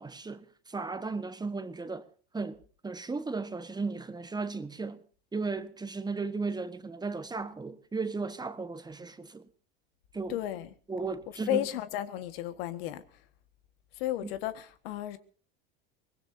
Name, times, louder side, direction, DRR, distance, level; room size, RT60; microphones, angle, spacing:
voice 1, 0.0-2.0 2.3-5.0 5.3-9.5 10.1-10.4 10.9-11.7 14.2-14.3, right 4 dB, 15° right, 1.4 m, -35 dB
voice 2, 10.3-10.7 11.5-13.0 14.0-15.2, left 13 dB, 75° left, 1.7 m, -33 dB
23.5 x 19.5 x 2.8 m
supercardioid pair, 105°, 29 cm